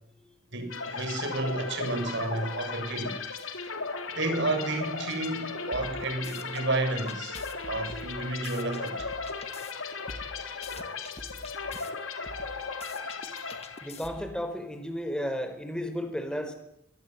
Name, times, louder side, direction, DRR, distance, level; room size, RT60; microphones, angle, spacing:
voice 1, 0.5-3.2 4.1-9.1, right 2 dB, 65° right, 7 dB, 7.2 m, -31 dB
sound 1, 0.7-14.3, left 4 dB, 75° left, 3.9 m, -36 dB
sound 2, 5.7-6.6 7.1-9.7 10.1-11.9 12.3-14.4, left 2 dB, 30° left, 2.5 m, -45 dB
voice 2, 13.8-16.5, equal, 5° left, 8 dB, 4.8 m, -33 dB
24.5 x 23.0 x 9.6 m, 0.76 s
head